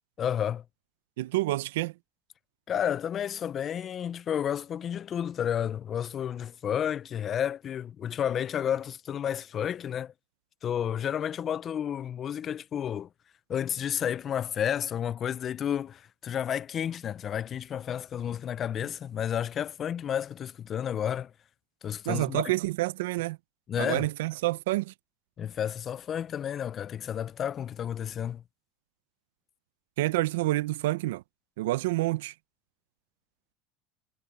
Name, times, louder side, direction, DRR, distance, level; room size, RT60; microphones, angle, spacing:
voice 1, 0.2-0.6 2.7-10.1 10.6-13.1 13.5-21.3 21.8-22.5 23.7-24.1 25.4-28.4, left 9 dB, 30° left, 0.3 m, -31 dB
voice 2, 1.2-1.9 22.1-23.4 23.8-24.9 30.0-31.2 31.6-32.3, right 18 dB, 85° right, 0.6 m, -28 dB
supercardioid pair, 130°, 0 cm